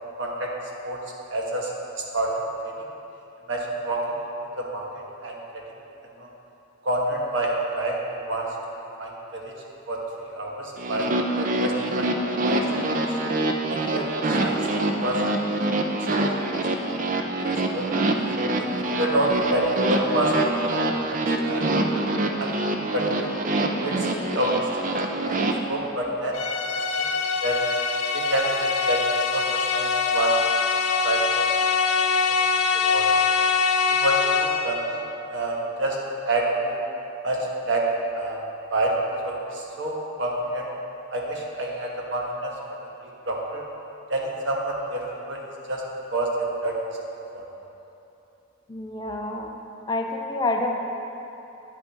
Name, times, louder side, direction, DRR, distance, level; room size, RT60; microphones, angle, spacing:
voice 1, 0.2-0.5 0.8-1.0 1.3-1.7 2.1-2.3 2.6-2.7 3.5-4.0 4.6-4.8 5.2-5.6 6.2-6.3 6.8-8.5 9.0-9.5 9.9-10.0 10.4-11.1 11.3-12.1 12.4-12.6 13.0-13.2 13.7-14.1 14.4-14.6 15.0-15.2 16.1-16.2 17.0-17.1 17.4-17.8 18.8-20.6 20.9-21.7 21.9-22.1 22.4-22.5 22.9-23.3 23.8-24.1 24.3-24.5 24.9-25.4 25.7-26.4 27.0-27.1 27.4-27.6 28.1-29.0 29.3-30.3 31.0-31.5 32.3-32.4 32.7-33.2 33.9-35.0 35.3-36.0 36.2-36.8 37.2-37.9 38.1-38.4 38.7-38.9 39.2-40.7 41.1-42.5 43.3-43.6 44.1-45.4 45.7-45.8 46.1-46.8 47.3-47.4, right 1 dB, 55° right, -2 dB, 1.2 m, -27 dB
sound 1, 10.8-25.5, right 1 dB, 40° right, 0.5 m, -25 dB
sound 2, 26.3-34.8, left 5 dB, 75° left, 0.6 m, -23 dB
voice 2, 48.7-49.6 49.9-50.7, left 2 dB, 20° left, 2 dB, 0.4 m, -27 dB
9.3 x 8.3 x 3.4 m, 2.9 s
head